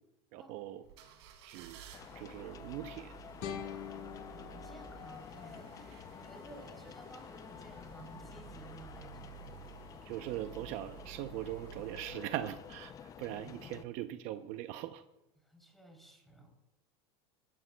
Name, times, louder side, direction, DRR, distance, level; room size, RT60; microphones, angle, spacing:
voice 1, 0.3-0.8 1.4-1.8 2.1-3.1 3.4-3.6 10.1-12.9 13.2-15.0, right 13 dB, 55° right, 9 dB, 0.7 m, -41 dB
sound 1, 0.8-13.3 13.8-13.9, right 10 dB, 85° right, 3.5 m, -54 dB
sound 2, 1.9-13.8, left 8 dB, 25° left, 0.5 m, -50 dB
sound 3, 3.4-6.4, left 9 dB, 65° left, 1.8 m, -46 dB
voice 2, 3.6-9.4 15.4-16.5, right 2 dB, ahead, 1 dB, 3.2 m, -55 dB
22.5 x 13.5 x 2.3 m, 0.93 s
supercardioid pair, 140°, 14 cm